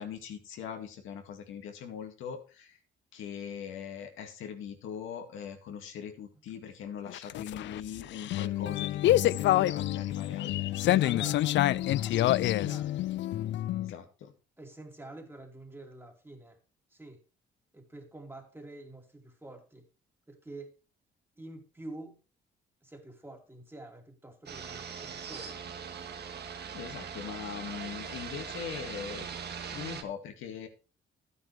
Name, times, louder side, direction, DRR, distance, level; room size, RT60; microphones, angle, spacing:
voice 1, 0.0-2.8 3.1-11.3 13.8-14.3 26.7-30.7, left 8 dB, 85° left, 5 dB, 2.1 m, -41 dB
sound 1, 7.1-13.9, left 14 dB, 65° left, 0.4 m, -27 dB
voice 2, 11.0-13.0 14.6-16.6 16.9-17.2 17.7-19.9 20.3-20.8 21.4-22.2 22.8-25.6, right 2 dB, 10° right, 3 dB, 2.7 m, -47 dB
sound 2, 24.5-30.0, right 6 dB, 55° right, 1.7 m, -41 dB
12.0 x 9.3 x 3.2 m, 0.33 s
cardioid pair, 90°, 20 cm